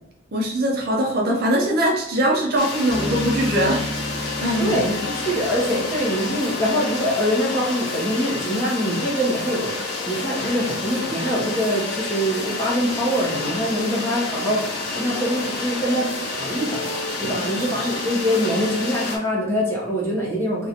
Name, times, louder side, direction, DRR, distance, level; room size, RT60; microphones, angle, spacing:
voice 1, 0.3-3.8 4.4-4.8 17.4-17.9, right 1 dB, 45° right, 0 dB, 0.5 m, -22 dB
sound 1, 2.6-19.2, left 3 dB, 50° left, 0.7 m, -29 dB
Bass guitar, 2.9-6.3, equal, 15° right, 1.3 m, -32 dB
voice 2, 4.6-14.6 14.9-16.9 17.2-20.7, equal, 10° left, -5 dB, 0.8 m, -24 dB
2.7 x 2.4 x 4.0 m, 0.77 s
head